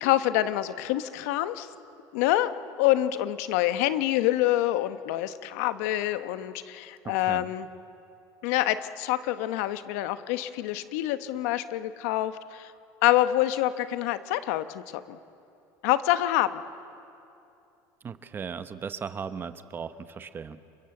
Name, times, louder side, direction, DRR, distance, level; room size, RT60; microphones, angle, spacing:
voice 1, 0.0-1.7 2.1-2.5 2.8-7.7 8.4-12.7 13.0-15.2 15.8-16.6, left 14 dB, 85° left, 12 dB, 1.0 m, -26 dB
voice 2, 7.0-7.5 18.0-20.6, right 6 dB, 25° right, 12 dB, 0.9 m, -37 dB
29.5 x 21.5 x 7.9 m, 2.7 s
cardioid pair, 130°, 8 cm